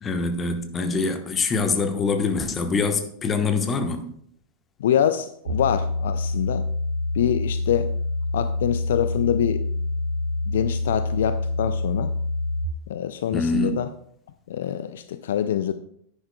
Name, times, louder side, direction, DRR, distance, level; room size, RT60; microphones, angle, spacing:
voice 1, 0.0-4.0 13.3-13.8, left 4 dB, 20° left, 6 dB, 1.1 m, -24 dB
voice 2, 4.8-6.7 7.1-7.9 8.3-9.7 10.5-12.1 12.9-13.9 14.5-15.7, left 10 dB, 60° left, 11 dB, 0.4 m, -25 dB
sound 1, 5.5-12.7, left 2 dB, 70° right, 1.2 m, -26 dB
10.0 x 9.9 x 2.2 m, 0.68 s
figure-of-eight pair, 90°, 0 cm